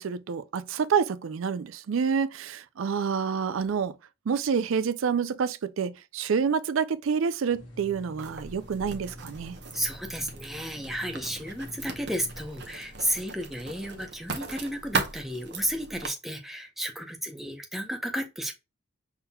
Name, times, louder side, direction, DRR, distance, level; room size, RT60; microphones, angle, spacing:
voice 1, 0.0-3.9 4.3-9.6, right 6 dB, 75° right, 0.4 m, -28 dB
sound 1, 7.5-12.5, left 1 dB, 60° left, 1.5 m, -47 dB
Writing, 8.2-16.1, right 4 dB, 55° right, 0.8 m, -38 dB
voice 2, 9.7-18.5, equal, ahead, 0.6 m, -33 dB
5.6 x 3.6 x 2.2 m
head